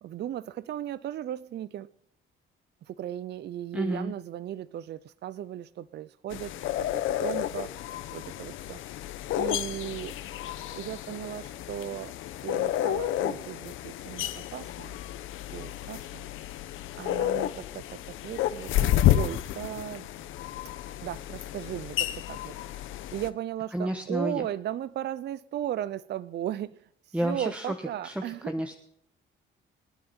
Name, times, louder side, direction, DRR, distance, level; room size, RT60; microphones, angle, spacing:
voice 1, 0.0-1.9 2.9-7.7 8.1-8.8 9.4-10.2 10.7-12.1 12.4-15.0 15.5-16.3 16.9-20.1 21.0-26.8 27.1-28.6, right 11 dB, 60° right, 0.5 m, -36 dB
voice 2, 3.7-4.1 23.7-24.5 27.1-27.7 28.0-28.7, equal, 5° right, 1.2 m, -30 dB
sound 1, 6.3-23.3, left 13 dB, 85° left, 0.8 m, -31 dB
25.5 x 9.5 x 4.4 m
cardioid pair, 90°, 20 cm